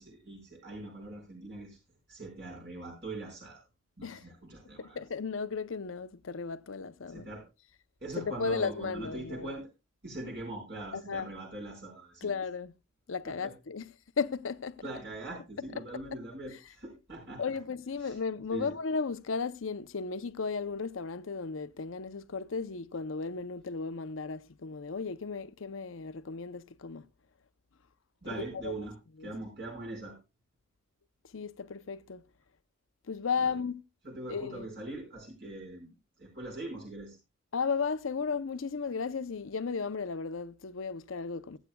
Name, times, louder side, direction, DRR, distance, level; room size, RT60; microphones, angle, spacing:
voice 1, 0.0-1.8 2.1-3.6 4.0-5.0 7.1-7.4 8.0-9.7 10.0-12.3 13.2-13.5 14.8-17.4 18.0-18.1 18.5-18.7 28.2-29.0 29.2-30.2 33.4-33.5 34.0-37.2, right 2 dB, 55° right, 5.1 m, -42 dB
voice 2, 4.8-7.3 8.2-9.5 10.9-11.3 12.2-12.7 13.1-14.8 15.8-15.9 17.4-27.1 28.3-28.7 29.2-29.3 31.3-32.2 33.1-33.8 34.3-34.7 37.5-41.6, left 5 dB, 80° left, 0.7 m, -35 dB
23.5 x 8.2 x 2.3 m
head